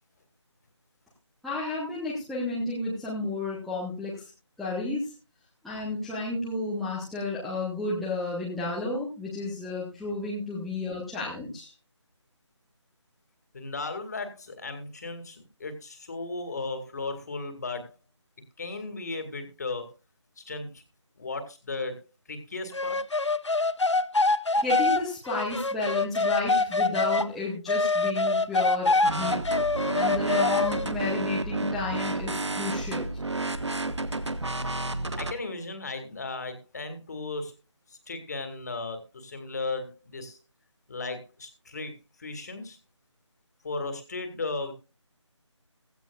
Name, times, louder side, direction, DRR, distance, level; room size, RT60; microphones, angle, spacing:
voice 1, 1.4-4.3 4.6-5.1 5.6-11.7 24.6-29.4 29.9-33.1, left 2 dB, ahead, -9 dB, 0.9 m, -32 dB
voice 2, 13.5-17.9 18.6-19.9 20.4-20.8 21.2-22.0 22.3-23.0 35.2-37.5 37.9-40.4 40.9-41.9 42.2-42.8 43.6-44.7, left 3 dB, 35° left, 8 dB, 2.2 m, -35 dB
sound 1, 22.7-27.3 27.7-30.9, left 3 dB, 70° left, 0.8 m, -25 dB
sound 2, 29.0-35.3, right 2 dB, 65° right, 1.2 m, -31 dB
16.0 x 15.0 x 2.4 m, 0.30 s
figure-of-eight pair, 160°, 16 cm